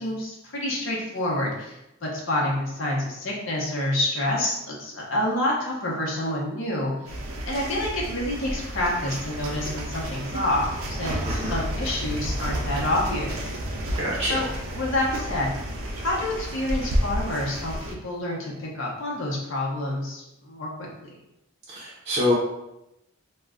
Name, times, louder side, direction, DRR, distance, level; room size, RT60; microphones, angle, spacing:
voice 1, 0.0-6.9 7.5-10.7 11.0-13.5 14.3-15.6 15.9-21.1, left 1 dB, 70° left, -3 dB, 0.8 m, -28 dB
sound 1, 7.0-17.9, right 1 dB, 90° right, 0.5 m, -31 dB
voice 2, 14.0-14.4 21.7-22.3, left 1 dB, 30° right, -7 dB, 0.6 m, -25 dB
2.3 x 2.1 x 3.6 m, 0.87 s
head